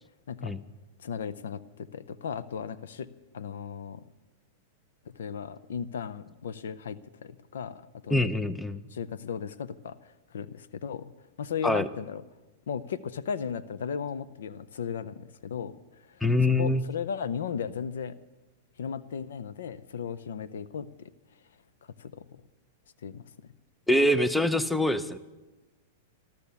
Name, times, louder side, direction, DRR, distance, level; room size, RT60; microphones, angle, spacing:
voice 1, 1.0-3.1 3.3-4.0 5.2-8.2 8.9-10.0 10.3-11.1 11.4-12.2 12.7-15.7 16.1-16.2 16.6-18.1 18.8-21.1 22.0-22.2 23.0-23.2, left 7 dB, 90° left, 14 dB, 0.6 m, -36 dB
voice 2, 8.1-8.8 11.6-11.9 16.2-16.8 23.9-25.2, left 1 dB, 5° left, 13 dB, 0.6 m, -24 dB
13.5 x 13.5 x 7.0 m, 1.1 s
supercardioid pair, 150°, 0 cm